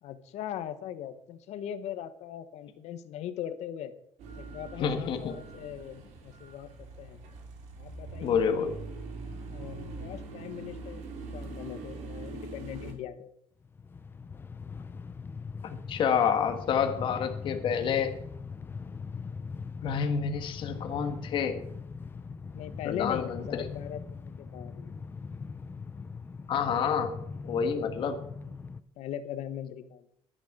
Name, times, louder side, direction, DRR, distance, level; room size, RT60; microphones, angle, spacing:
voice 1, 0.0-3.9 4.4-7.2 7.8-8.8 9.5-11.0 11.3-13.3 22.5-24.9 27.9-28.0 29.0-30.1, left 10 dB, 75° left, 11 dB, 1.2 m, -40 dB
sound 1, 4.2-12.9, right 3 dB, 80° right, 3.1 m, -42 dB
voice 2, 4.8-5.3 8.2-8.7 15.6-18.2 19.8-21.6 22.8-23.7 26.5-27.1 27.4-28.2, left 7 dB, 45° left, 6 dB, 1.4 m, -28 dB
Train, 13.6-28.8, left 5 dB, 20° left, 0.5 m, -41 dB
11.5 x 10.5 x 4.8 m, 0.74 s
cardioid pair, 175°, 12 cm